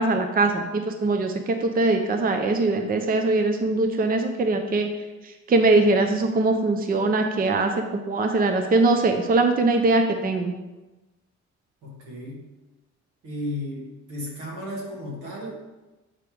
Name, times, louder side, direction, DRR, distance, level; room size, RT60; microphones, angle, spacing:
voice 1, 0.0-4.9 5.5-10.5, right 2 dB, 30° right, 5 dB, 0.6 m, -22 dB
voice 2, 11.8-12.4 13.2-15.5, left 1 dB, 90° right, -3 dB, 2.0 m, -34 dB
7.0 x 3.4 x 4.9 m, 1.1 s
cardioid pair, 90°, 30 cm